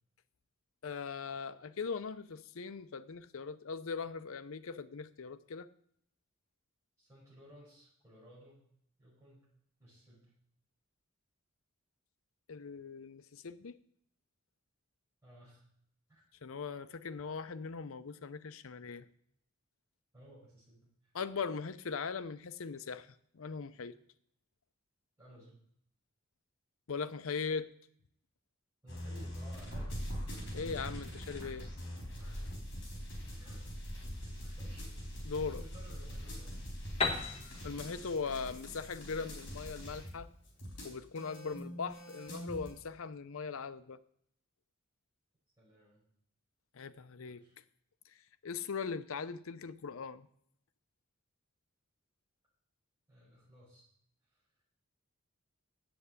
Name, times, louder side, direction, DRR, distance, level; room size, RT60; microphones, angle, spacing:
voice 1, 0.8-5.7 12.5-13.8 16.4-19.0 21.1-23.1 23.3-24.0 26.9-27.7 30.5-31.7 35.2-35.6 37.6-40.3 40.8-44.0 46.7-47.4 48.4-50.3, left 5 dB, 75° left, 13 dB, 0.6 m, -40 dB
voice 2, 7.0-8.6 9.0-9.5 9.8-10.3 15.2-15.6 16.1-16.2 20.1-21.1 25.2-25.6 28.8-30.1 32.2-32.4 33.4-33.6 34.1-34.9 35.2-36.5 45.6-46.0 47.2-47.6 53.1-53.8 54.3-54.4, right 1 dB, 15° right, -9 dB, 5.6 m, -57 dB
sound 1, 28.9-42.7, equal, 55° left, 4.0 m, -43 dB
Piano, 37.0-40.7, left 3 dB, 30° left, 1.1 m, -38 dB
7.8 x 7.8 x 8.2 m, 0.68 s
head